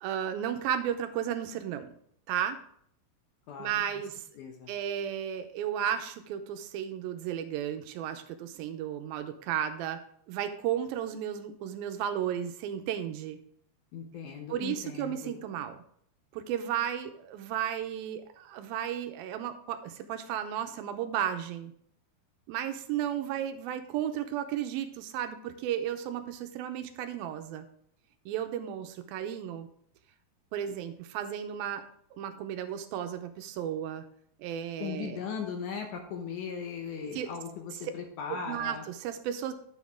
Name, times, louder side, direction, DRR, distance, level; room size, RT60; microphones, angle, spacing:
voice 1, 0.0-1.9 2.3-2.6 3.6-4.2 4.7-10.0 10.3-13.4 14.5-15.8 16.3-21.7 22.5-27.7 28.3-29.7 30.5-31.8 32.2-34.0 34.4-35.2 37.2-37.3 38.3-39.5, right 10 dB, 80° right, 8 dB, 2.5 m, -34 dB
voice 2, 3.5-3.8 4.4-4.7 13.9-15.3 34.8-38.8, left 6 dB, 70° left, 4 dB, 2.1 m, -38 dB
9.3 x 7.4 x 3.6 m, 0.64 s
omnidirectional pair, 4.4 m